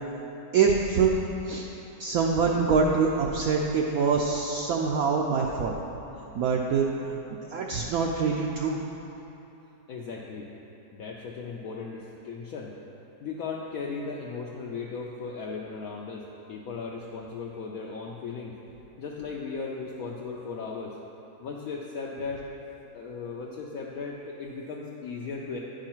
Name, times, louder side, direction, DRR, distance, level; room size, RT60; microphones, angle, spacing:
voice 1, 0.5-1.2 1.4-1.7 2.0-5.8 6.3-6.9 7.3-8.8, right 5 dB, 70° right, -1 dB, 0.9 m, -25 dB
voice 2, 9.9-10.5 10.9-12.7 13.2-18.5 19.0-21.0 21.4-22.4 22.9-25.6, left 4 dB, 70° left, -2 dB, 0.9 m, -37 dB
9.6 x 4.8 x 4.5 m, 3.0 s
omnidirectional pair, 1.8 m